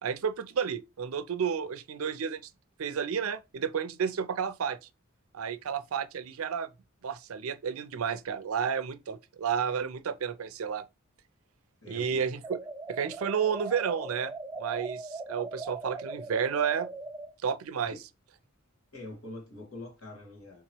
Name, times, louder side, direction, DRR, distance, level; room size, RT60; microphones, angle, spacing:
voice 1, 0.0-2.4 2.8-4.8 5.3-6.7 7.0-10.9 11.9-12.6 12.9-14.3 14.6-16.9 17.4-18.0, right 7 dB, 85° right, 0.5 m, -31 dB
voice 2, 11.8-12.2 17.9-18.0 18.9-20.6, left 2 dB, 80° left, 2.0 m, -44 dB
sound 1, 12.4-17.3, right 3 dB, 10° right, 0.4 m, -40 dB
3.6 x 2.9 x 4.5 m
head